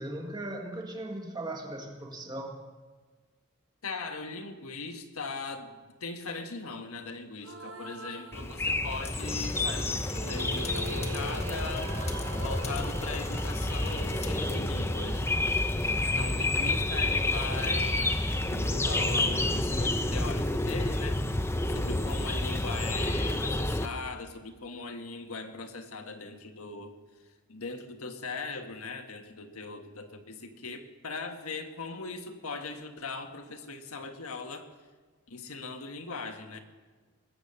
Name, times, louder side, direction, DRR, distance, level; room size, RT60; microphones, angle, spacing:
voice 1, 0.0-2.6 16.1-16.7, right 1 dB, 20° right, 3 dB, 1.6 m, -38 dB
voice 2, 3.8-11.9 12.3-15.3 16.0-21.2 21.6-27.0 27.5-34.7 35.3-36.6, left 4 dB, 85° left, 6 dB, 1.5 m, -39 dB
sound 1, 7.4-9.1 9.8-15.9, right 2 dB, 75° right, 1.4 m, -43 dB
sound 2, 8.3-23.9, left 2 dB, 10° left, 0.6 m, -29 dB
sound 3, 9.0-14.3, left 5 dB, 30° left, 1.5 m, -46 dB
20.5 x 9.1 x 6.7 m, 1.4 s
head